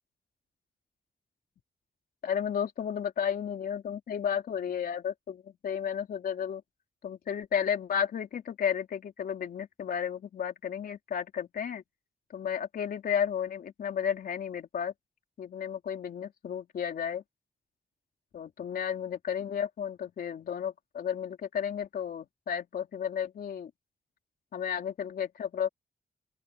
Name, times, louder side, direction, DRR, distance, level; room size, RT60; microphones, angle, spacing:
voice 1, 2.2-6.6 7.0-11.8 12.3-14.9 15.4-17.2 18.3-23.7 24.5-25.7, left 8 dB, 80° left, 3.2 m, -33 dB
open air
wide cardioid pair, 120°, 15 cm